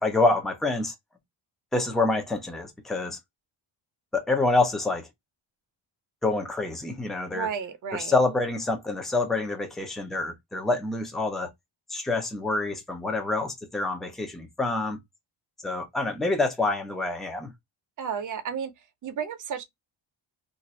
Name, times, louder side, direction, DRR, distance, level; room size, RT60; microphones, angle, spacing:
voice 1, 0.0-0.9 1.7-3.2 4.1-5.1 6.2-7.5 7.9-11.5 11.9-15.0 15.6-17.5, left 2 dB, ahead, 0.5 m, -27 dB
voice 2, 7.3-8.1 18.0-18.7 19.0-19.6, right 7 dB, 40° right, 0.6 m, -32 dB
2.6 x 2.4 x 4.1 m
wide cardioid pair, 170°, 48 cm